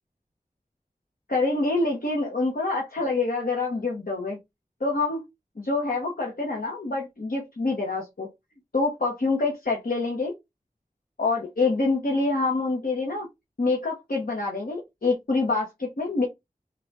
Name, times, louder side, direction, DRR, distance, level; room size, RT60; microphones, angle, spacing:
voice 1, 1.3-4.4 4.8-5.2 5.6-8.3 8.7-10.3 11.2-13.3 13.6-16.2, left 3 dB, 85° left, -1 dB, 1.0 m, -26 dB
3.8 x 2.3 x 4.5 m, 0.20 s
wide cardioid pair, 50°, 14 cm